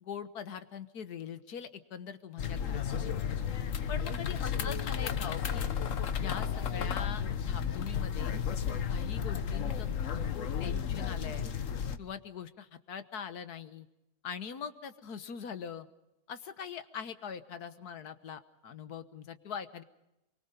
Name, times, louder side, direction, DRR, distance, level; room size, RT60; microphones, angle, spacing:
voice 1, 0.0-3.1 3.9-5.7 6.2-8.4 8.9-9.9 10.1-11.5 12.0-13.9 14.2-15.9 16.3-19.8, left 7 dB, 90° left, 11 dB, 1.8 m, -42 dB
sound 1, 2.4-12.0, left 7 dB, 60° left, 1.4 m, -33 dB
25.0 x 23.5 x 5.3 m, 0.89 s
omnidirectional pair, 1.6 m